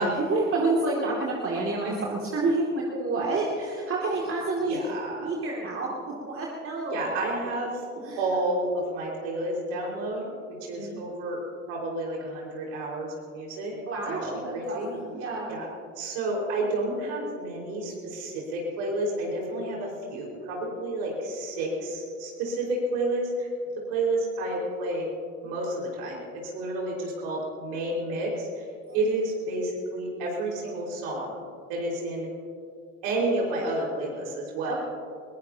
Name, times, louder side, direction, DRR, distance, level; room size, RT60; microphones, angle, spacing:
voice 1, 0.0-4.8 5.2-5.9 6.3-7.1 8.0-8.3 10.6-11.0 13.9-15.5 28.9-29.0 34.7-34.8, right 3 dB, 35° right, -2 dB, 2.6 m, -29 dB
voice 2, 4.6-5.3 6.9-7.8 8.2-11.4 11.7-13.7 14.1-14.9 15.5-15.7 16.0-23.5 23.9-25.1 25.4-28.7 28.9-31.3 31.7-32.3 33.0-34.8, right 2 dB, 65° right, -2 dB, 4.9 m, -30 dB
22.5 x 21.5 x 2.9 m, 2.3 s
figure-of-eight pair, 60°, 38 cm